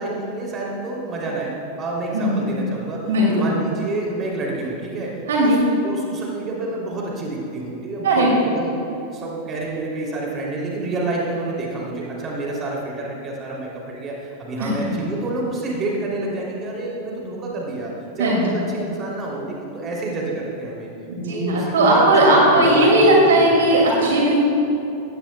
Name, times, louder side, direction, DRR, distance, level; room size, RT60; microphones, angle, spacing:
voice 1, 0.0-5.6 5.8-8.8 9.1-20.9 21.3-23.6, right 2 dB, 25° right, -3 dB, 3.0 m, -28 dB
voice 2, 2.1-2.4 3.1-3.5 5.3-5.6 8.0-8.3 14.6-14.7 18.2-18.4 21.1-24.3, right 1 dB, 60° right, -2 dB, 2.4 m, -17 dB
18.0 x 15.5 x 2.3 m, 2.9 s
figure-of-eight pair, 90°, 0 cm